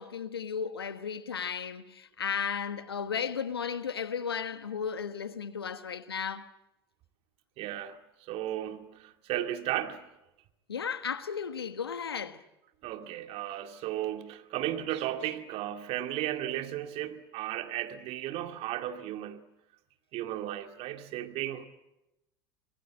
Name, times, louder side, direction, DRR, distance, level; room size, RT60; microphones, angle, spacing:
voice 1, 0.0-6.5 10.7-12.4, left 7 dB, 85° left, 1.3 m, -34 dB
voice 2, 7.6-10.1 12.8-19.4 20.1-21.6, right 12 dB, 55° right, 2.3 m, -35 dB
27.0 x 20.5 x 8.7 m
hypercardioid pair, 75°, 12 cm